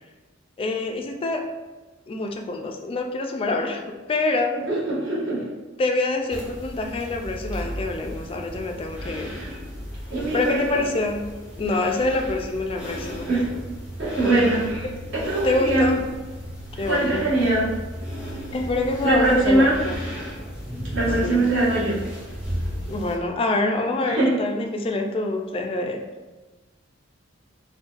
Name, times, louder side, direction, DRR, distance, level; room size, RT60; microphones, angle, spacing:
voice 1, 0.6-1.5 2.1-4.6 5.8-9.4 10.3-11.2 11.6-13.3 14.8-14.9 15.4-16.0 16.8-17.3 18.5-19.9 21.2-21.4 22.9-26.0, left 2 dB, 30° left, 3 dB, 0.3 m, -26 dB
voice 2, 4.5-5.4 10.1-10.8 13.3-13.4 14.0-14.8 15.1-15.9 16.8-17.7 19.0-19.8 20.9-22.0 24.0-24.3, right 2 dB, 65° right, -10 dB, 1.4 m, -22 dB
sound 1, 6.3-23.1, equal, 5° right, 0.7 m, -34 dB
3.8 x 2.2 x 2.5 m, 1.2 s
head